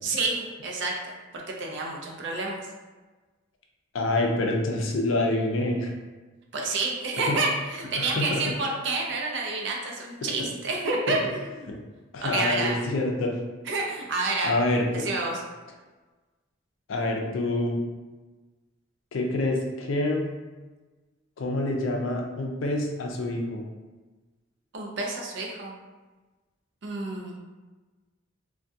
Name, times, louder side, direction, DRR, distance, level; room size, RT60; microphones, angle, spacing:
voice 1, 0.0-2.6 6.5-11.7 12.2-12.8 13.7-14.5 14.9-15.4 24.7-25.7 26.8-27.4, right 3 dB, 60° right, 0 dB, 0.5 m, -29 dB
voice 2, 3.9-5.9 7.3-7.4 8.0-8.4 11.1-11.2 11.7-11.8 12.1-13.3 14.4-15.1 16.9-17.8 19.1-20.3 21.4-23.6, left 2 dB, 75° left, 1 dB, 0.4 m, -26 dB
2.3 x 2.2 x 2.6 m, 1.2 s
head